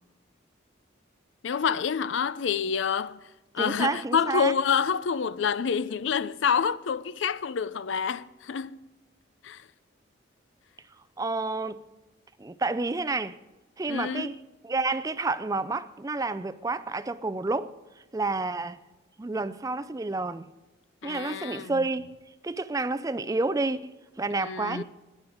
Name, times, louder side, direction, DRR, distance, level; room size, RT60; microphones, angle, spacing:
voice 1, 1.4-3.2 3.5-8.8 9.4-9.6 13.9-14.3 21.0-21.8 24.3-24.8, left 6 dB, 75° left, 0.5 m, -28 dB
voice 2, 3.6-4.6 11.2-11.8 12.4-13.4 13.8-14.4 14.6-17.7 18.1-18.8 19.2-20.5 21.0-22.1 22.4-23.9 24.2-24.8, right 3 dB, 15° right, 0.4 m, -29 dB
18.0 x 11.0 x 4.9 m
head